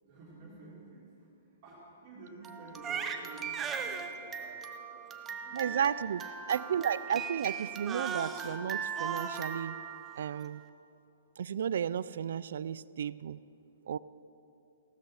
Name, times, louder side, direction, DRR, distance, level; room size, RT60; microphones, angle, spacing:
voice 1, 0.0-1.3 1.6-5.9, right 3 dB, 35° right, -5 dB, 2.7 m, -51 dB
Crying sobbing, 2.4-10.6, right 6 dB, 15° right, 0.6 m, -38 dB
voice 2, 5.5-6.2 6.5-9.8 10.2-10.6 11.4-13.4 13.9-14.0, right 8 dB, 65° right, 19 dB, 0.3 m, -33 dB
16.0 x 13.0 x 4.8 m, 2.8 s
hypercardioid pair, 165°, 0 cm